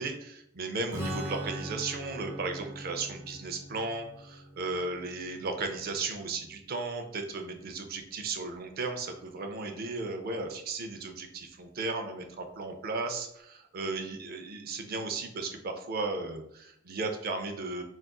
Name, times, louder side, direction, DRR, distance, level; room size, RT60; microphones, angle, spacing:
voice 1, 0.0-17.8, right 3 dB, 50° right, 5 dB, 0.4 m, -35 dB
Strum, 0.9-6.5, right 1 dB, 15° right, 0.7 m, -41 dB
3.6 x 2.4 x 2.2 m, 0.76 s
head